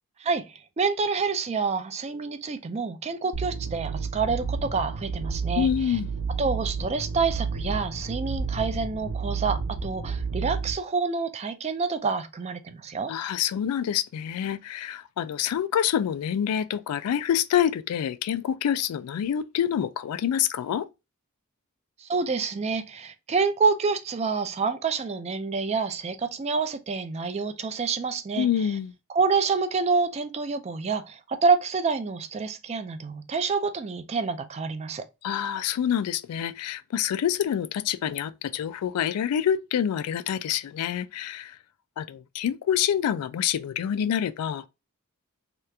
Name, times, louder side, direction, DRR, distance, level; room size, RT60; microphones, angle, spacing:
voice 1, 0.2-6.0 6.4-13.1 22.0-28.5 29.1-35.0, right 4 dB, 30° right, 0.3 m, -27 dB
sound 1, 3.3-10.7, right 4 dB, 75° right, 0.7 m, -31 dB
voice 2, 5.5-6.1 13.1-20.9 28.4-28.9 35.2-41.6 42.0-44.7, left 9 dB, 85° left, 0.3 m, -27 dB
2.9 x 2.4 x 3.2 m
head